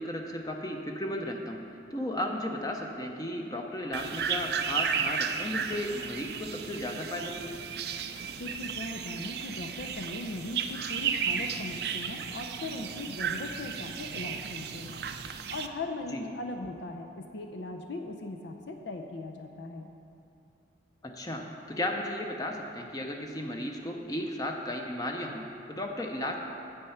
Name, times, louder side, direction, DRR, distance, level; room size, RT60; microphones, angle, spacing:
voice 1, 0.0-1.6 1.9-7.5 16.1-16.3 21.0-26.3, left 1 dB, 20° left, 2 dB, 0.6 m, -34 dB
sound 1, 3.9-15.7, right 7 dB, 60° right, 0.4 m, -34 dB
voice 2, 8.4-15.0 15.5-19.9, left 2 dB, 75° left, 4 dB, 0.6 m, -39 dB
8.8 x 7.9 x 5.7 m, 2.7 s
head